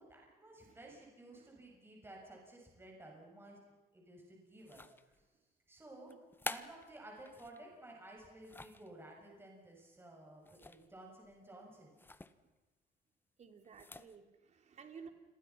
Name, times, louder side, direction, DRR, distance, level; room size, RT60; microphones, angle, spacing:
voice 1, 0.0-5.2 5.7-6.1 6.4-12.1, right 1 dB, 15° right, -1 dB, 6.8 m, -55 dB
voice 2, 0.6-1.0 1.3-1.5 5.3-5.4 6.0-6.2 12.4-12.5 13.4-15.1, right 6 dB, 40° right, 6 dB, 3.2 m, -55 dB
sound 1, 4.6-5.3 6.1-7.6 8.2-8.9 10.4-11.0 11.2-11.4 12.0-12.3 13.6-14.2, left 2 dB, 10° left, 1.0 m, -48 dB
29.0 x 22.5 x 5.8 m, 1.2 s
cardioid pair, 110°, 17 cm